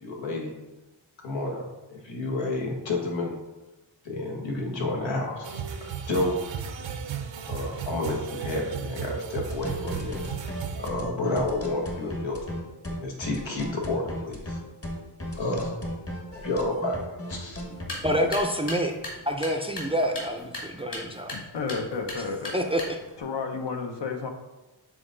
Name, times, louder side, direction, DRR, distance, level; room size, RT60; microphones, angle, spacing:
voice 1, 0.0-0.5 1.2-1.6 1.9-3.3 4.0-6.4 7.5-10.2 10.8-12.6 12.8-14.6 15.3-15.8 16.4-17.6, left 2 dB, 90° left, 1.4 m, -30 dB
sound 1, 5.4-10.9, right 7 dB, 85° right, 0.7 m, -35 dB
sound 2, 9.5-18.5, equal, 30° left, 1.1 m, -35 dB
sound 3, 17.7-23.2, left 1 dB, 45° left, 2.1 m, -39 dB
voice 2, 18.0-18.9 19.3-21.3 22.5-23.0, equal, 15° right, 0.4 m, -27 dB
voice 3, 21.3-22.6 23.2-24.3, left 4 dB, 70° left, 0.9 m, -32 dB
6.3 x 3.9 x 3.8 m
wide cardioid pair, 115°, 44 cm